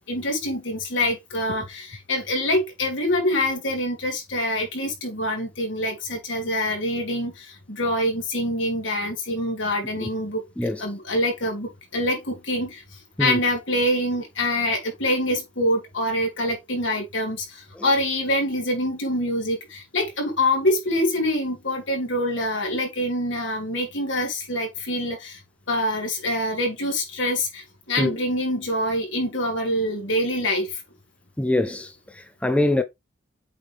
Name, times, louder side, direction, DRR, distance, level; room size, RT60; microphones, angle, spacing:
voice 1, 0.1-10.4 10.8-25.4 25.7-30.8, left 1 dB, 75° left, 3.0 m, -25 dB
voice 2, 31.4-32.8, left 1 dB, 5° left, 0.4 m, -24 dB
8.1 x 3.7 x 3.4 m
head